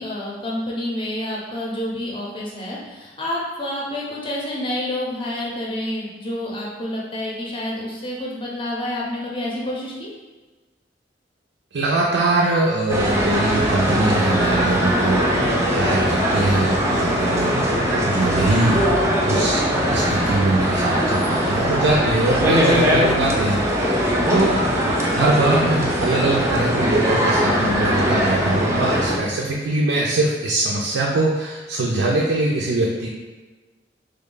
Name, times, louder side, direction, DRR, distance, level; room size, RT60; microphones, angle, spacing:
voice 1, 0.0-10.1, left 1 dB, 30° left, -4 dB, 0.6 m, -28 dB
voice 2, 11.7-15.3 15.6-18.8 19.3-24.6 25.1-33.1, right 2 dB, 85° right, -3 dB, 0.4 m, -22 dB
sound 1, 12.9-29.2, equal, 15° right, 0.4 m, -20 dB
3.3 x 2.2 x 3.8 m, 1.2 s
head